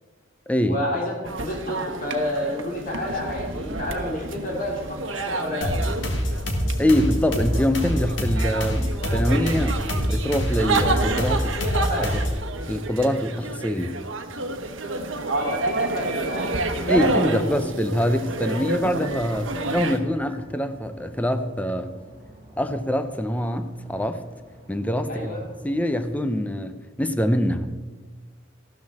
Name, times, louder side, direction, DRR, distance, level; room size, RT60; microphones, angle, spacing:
voice 1, 0.6-5.8 11.6-12.1 15.3-16.5 16.8-17.6 25.1-25.4, left 1 dB, 45° left, -1 dB, 2.7 m, -30 dB
sound 1, 1.2-20.0, right 2 dB, 85° right, 1.1 m, -29 dB
sound 2, 5.6-12.5, equal, 65° left, 1.9 m, -26 dB
voice 2, 6.8-11.6 12.0-12.1 12.7-14.0 16.9-21.9 22.6-24.2 24.7-25.3 25.6-27.7, equal, 10° left, 9 dB, 0.6 m, -24 dB
sound 3, 12.3-26.3, right 2 dB, 25° right, 3.7 m, -46 dB
14.5 x 12.5 x 4.2 m, 1.3 s
head